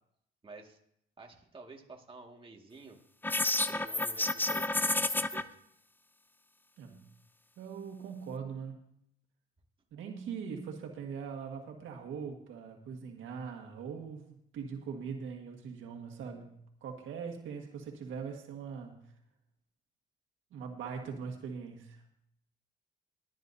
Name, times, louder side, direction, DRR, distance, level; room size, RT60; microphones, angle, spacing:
voice 1, 0.4-0.8 1.2-3.0 3.7-5.5, right 3 dB, 25° right, 1 dB, 2.1 m, -51 dB
sound 1, 3.2-5.4, left 2 dB, 10° left, 0.6 m, -30 dB
voice 2, 6.8-7.1 7.6-8.8 9.9-19.1 20.5-22.0, right 6 dB, 80° right, 2 dB, 1.8 m, -41 dB
20.0 x 10.5 x 2.8 m, 0.72 s
cardioid pair, 90°, 20 cm